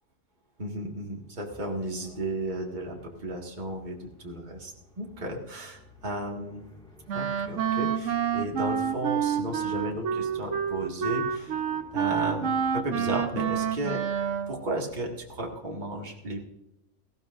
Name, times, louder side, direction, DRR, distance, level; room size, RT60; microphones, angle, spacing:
voice 1, 0.6-6.6 7.1-11.6 11.9-14.0 14.5-16.4, right 1 dB, 30° right, 0 dB, 1.9 m, -34 dB
sound 1, 1.5-15.4, left 1 dB, 5° left, 2.8 m, -54 dB
Wind instrument woodwind instrument, 7.1-14.6, right 8 dB, 60° right, 1.1 m, -28 dB
18.5 x 15.5 x 2.5 m, 0.91 s
omnidirectional pair, 1.5 m